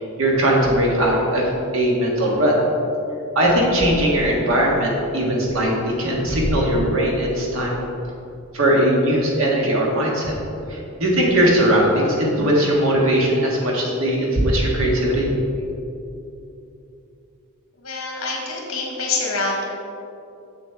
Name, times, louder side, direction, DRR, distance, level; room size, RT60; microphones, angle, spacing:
voice 1, 0.2-1.5 1.7-2.5 3.3-7.8 8.5-10.3 10.7-15.3, right 1 dB, 65° right, -3 dB, 1.5 m, -19 dB
voice 2, 17.8-19.6, left 3 dB, 70° left, -1 dB, 1.6 m, -25 dB
7.3 x 7.1 x 3.5 m, 2.7 s
head